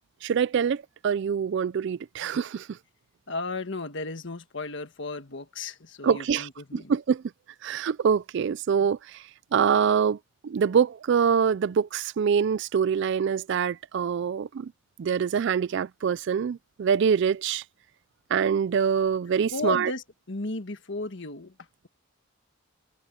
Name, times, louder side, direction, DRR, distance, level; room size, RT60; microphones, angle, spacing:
voice 1, 0.2-2.8 6.0-7.2 7.6-9.2 9.5-10.2 10.4-14.7 15.0-17.6 18.3-19.9, right 7 dB, 55° right, 0.3 m, -25 dB
voice 2, 3.3-6.9 19.3-21.9, left 3 dB, 60° left, 1.6 m, -35 dB
head